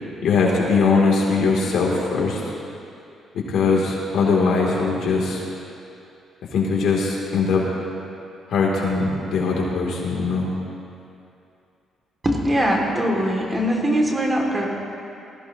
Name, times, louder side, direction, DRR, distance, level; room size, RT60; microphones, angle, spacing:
voice 1, 0.2-2.4 3.5-5.4 6.5-7.6 8.5-10.5, left 4 dB, 70° left, -2 dB, 2.9 m, -20 dB
voice 2, 12.2-14.7, equal, 25° right, -1 dB, 2.5 m, -21 dB
19.5 x 15.0 x 3.0 m, 2.7 s
cardioid pair, 90°, 0 cm